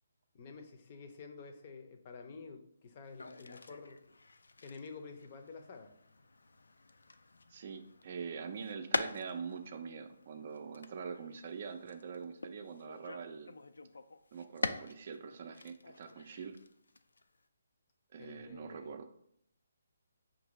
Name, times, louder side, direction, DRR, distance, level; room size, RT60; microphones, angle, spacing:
voice 1, 0.3-4.0 4.6-5.9 18.2-18.9, left 4 dB, 40° left, 6 dB, 0.6 m, -50 dB
sound 1, 3.0-15.2 15.5-17.5, left 3 dB, 85° left, 0.3 m, -44 dB
voice 2, 7.5-13.6 14.3-16.6 18.1-19.1, right 6 dB, 45° right, 7 dB, 0.4 m, -44 dB
5.4 x 2.6 x 3.0 m, 0.70 s
hypercardioid pair, 155°, 0 cm